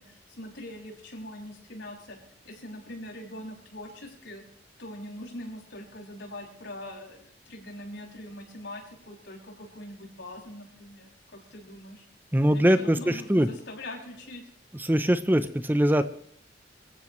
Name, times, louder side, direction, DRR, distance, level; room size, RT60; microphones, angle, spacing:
voice 1, 0.0-2.2 2.4-4.4 4.8-12.0 12.5-14.4, left 1 dB, 80° left, -1 dB, 6.2 m, -42 dB
voice 2, 12.3-13.5 14.7-16.0, equal, 10° right, 11 dB, 0.6 m, -22 dB
26.0 x 14.5 x 3.1 m, 0.68 s
head